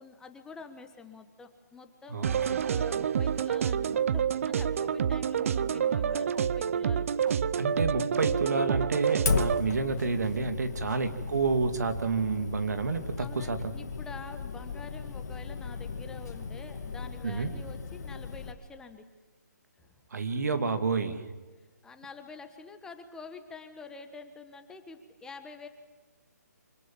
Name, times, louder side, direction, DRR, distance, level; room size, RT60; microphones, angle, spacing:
voice 1, 0.0-7.1 13.2-19.1 19.8-19.9 21.6-25.7, left 4 dB, 5° left, 7 dB, 1.3 m, -47 dB
voice 2, 2.1-2.5 7.6-13.7 17.2-17.5 20.1-21.3, right 4 dB, 70° right, 8 dB, 2.6 m, -29 dB
sound 1, 2.2-9.6, right 8 dB, 50° right, 0.7 m, -28 dB
sound 2, 4.6-4.7 5.0-5.2 5.5-5.6 5.9-6.1 6.4-6.5 6.8-7.0 7.3-7.4 7.7-7.9 8.2-8.3 8.6-8.8 9.1-9.2 9.5-10.1 10.4-10.6 10.9-11.0, left 8 dB, 25° left, 3.6 m, -54 dB
Fire, 9.3-18.5, left 5 dB, 65° left, 2.6 m, -36 dB
26.0 x 19.5 x 7.4 m, 1.3 s
hypercardioid pair, 150°, 9 cm